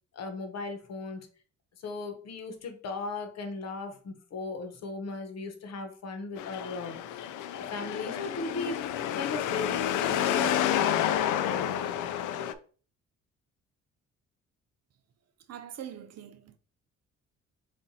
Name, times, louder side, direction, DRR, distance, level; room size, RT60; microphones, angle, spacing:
voice 1, 0.1-1.2 1.8-7.2 7.7-8.9 9.1-11.7, left 3 dB, 60° left, 1.1 m, -37 dB
sound 1, 6.4-12.5, left 10 dB, 85° left, 0.5 m, -29 dB
voice 2, 15.5-16.6, right 9 dB, 55° right, 0.6 m, -43 dB
6.9 x 2.6 x 2.8 m
cardioid pair, 90°, 30 cm